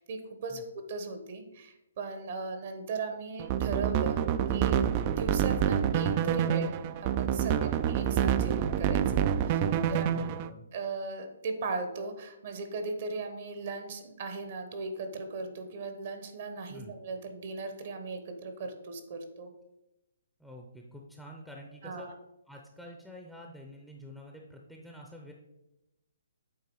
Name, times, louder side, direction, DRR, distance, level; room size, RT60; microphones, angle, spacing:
voice 1, 0.0-4.2 4.5-4.8 5.2-7.6 7.9-10.1 10.7-19.5 21.8-22.1, right 3 dB, 50° right, 6 dB, 1.0 m, -38 dB
sound 1, 3.4-10.5, right 9 dB, 30° right, 0.3 m, -27 dB
voice 2, 9.6-10.6 16.7-17.0 20.4-22.1 22.5-25.3, left 1 dB, ahead, -1 dB, 0.6 m, -48 dB
8.6 x 3.4 x 4.7 m, 0.93 s
hypercardioid pair, 150°, 0 cm